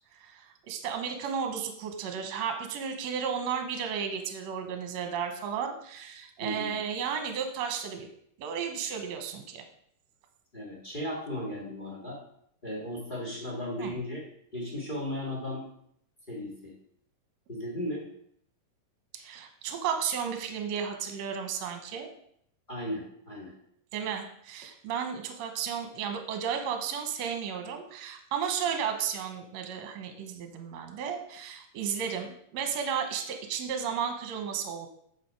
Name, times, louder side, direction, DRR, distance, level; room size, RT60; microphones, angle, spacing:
voice 1, 0.2-8.1 8.4-9.6 13.8-13.9 19.1-22.1 23.9-34.9, right 7 dB, 65° right, 5 dB, 2.0 m, -33 dB
voice 2, 6.4-6.7 10.5-12.2 12.6-14.2 14.5-15.6 16.3-16.7 17.5-18.1 22.7-23.5, left 1 dB, 25° left, 0 dB, 1.3 m, -36 dB
8.4 x 6.3 x 4.7 m, 0.69 s
omnidirectional pair, 3.9 m